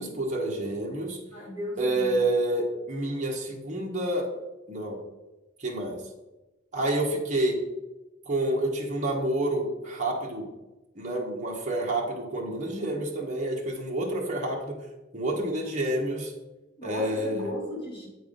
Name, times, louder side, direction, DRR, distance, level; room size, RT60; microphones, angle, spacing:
voice 1, 0.0-1.2 1.8-4.3 4.7-5.0 5.6-6.0 6.7-7.6 8.3-10.5 10.9-14.8 15.1-16.3 16.8-17.5, right 1 dB, 35° right, -1 dB, 1.3 m, -28 dB
voice 2, 1.3-2.2 16.8-18.1, left 1 dB, 25° left, -6 dB, 3.0 m, -36 dB
8.7 x 4.6 x 5.2 m, 1.1 s
head